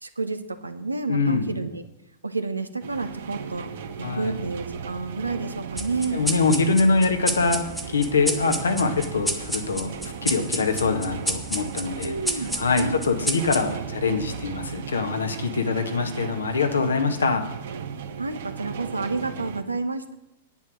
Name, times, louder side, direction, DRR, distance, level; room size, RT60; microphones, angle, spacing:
voice 1, 0.0-1.8 2.2-3.7 4.1-6.3 8.2-8.4 12.0-13.0 18.2-20.1, right 3 dB, 90° right, 9 dB, 1.0 m, -30 dB
voice 2, 1.1-1.5 4.0-4.4 6.1-12.1 12.6-17.4, left 4 dB, 80° left, 6 dB, 1.6 m, -24 dB
sound 1, 2.8-19.6, right 7 dB, 65° right, 1.1 m, -37 dB
sound 2, 5.8-14.7, right 1 dB, ahead, 1.3 m, -31 dB
10.0 x 9.4 x 6.2 m, 0.91 s
figure-of-eight pair, 100°, 0 cm